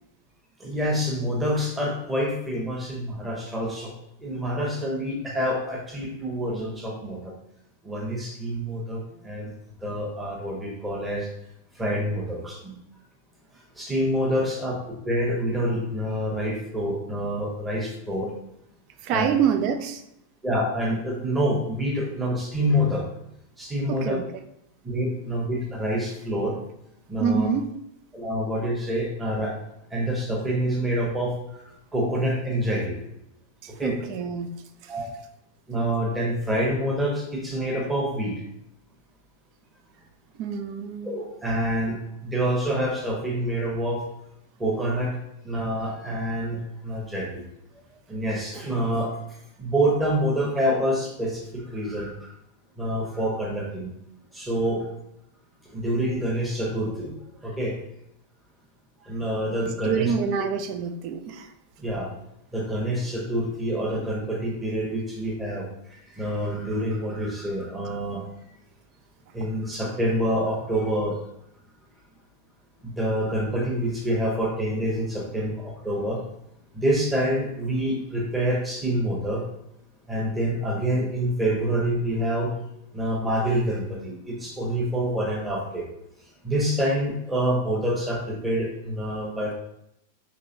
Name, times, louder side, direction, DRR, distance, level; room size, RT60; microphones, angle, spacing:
voice 1, 0.6-3.9 4.2-7.3 7.8-9.5 9.8-11.3 11.7-12.7 13.7-18.3 19.1-19.3 20.4-23.1 23.6-24.2 24.8-26.6 27.1-27.5 28.1-29.6 29.9-31.6 31.9-33.0 33.7-33.9 34.9-35.1 35.7-38.4 41.0-44.1 44.6-45.2 45.4-47.4 48.1-49.2 49.6-52.3 52.8-53.9 54.3-54.9 55.6-57.1 57.4-57.8 59.0-60.1 61.8-62.1 62.5-68.2 69.3-71.2 72.8-76.2 76.7-79.5 80.1-82.6 82.9-85.9 86.4-89.5, equal, 10° right, -2 dB, 1.1 m, -27 dB
voice 2, 19.0-20.0 23.9-24.2 27.2-27.7 33.6-34.5 34.8-34.9 40.4-41.2 59.9-61.5, right 7 dB, 45° right, 9 dB, 0.4 m, -26 dB
5.4 x 3.2 x 2.7 m, 0.80 s
figure-of-eight pair, 90°, 0 cm